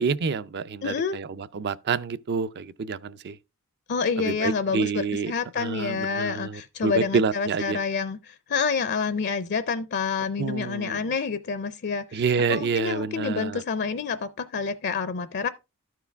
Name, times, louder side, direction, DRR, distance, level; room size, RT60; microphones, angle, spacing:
voice 1, 0.0-3.4 4.2-7.8 10.4-11.1 12.1-13.6, right 5 dB, 50° right, 0.4 m, -28 dB
voice 2, 0.8-1.2 3.9-12.2 12.5-15.5, left 5 dB, 50° left, 0.5 m, -28 dB
13.0 x 4.7 x 3.4 m
head